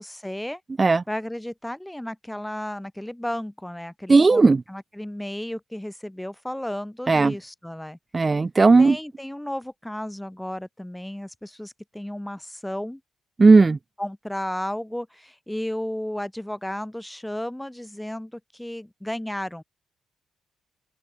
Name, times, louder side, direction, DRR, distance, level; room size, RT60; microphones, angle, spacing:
voice 1, 0.0-0.6 1.1-8.0 8.8-13.0 14.0-19.6, left 1 dB, 5° left, 2.6 m, -33 dB
voice 2, 4.1-4.6 7.1-7.3 8.1-9.0 13.4-13.8, right 3 dB, 20° right, 0.7 m, -15 dB
open air
cardioid pair, 160°, 0 cm